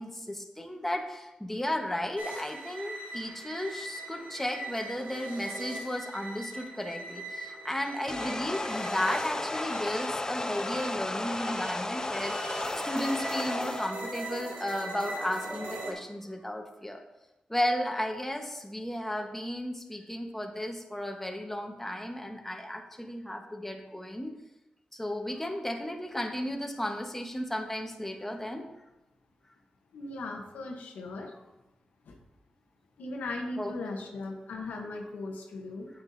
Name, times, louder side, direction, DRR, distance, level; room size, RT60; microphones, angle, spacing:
voice 1, 0.0-12.4 12.8-17.0 17.5-24.3 24.9-28.7 33.6-33.7, left 1 dB, 10° left, 2 dB, 1.3 m, -34 dB
sound 1, 2.2-15.9, right 2 dB, 90° right, 1.4 m, -41 dB
sound 2, 8.1-13.9, left 2 dB, 25° left, 0.3 m, -34 dB
voice 2, 29.9-31.3 32.1-32.2 33.0-35.9, left 2 dB, 90° left, 1 dB, 1.0 m, -38 dB
8.7 x 6.9 x 2.7 m, 0.96 s
cardioid pair, 50°, 3 cm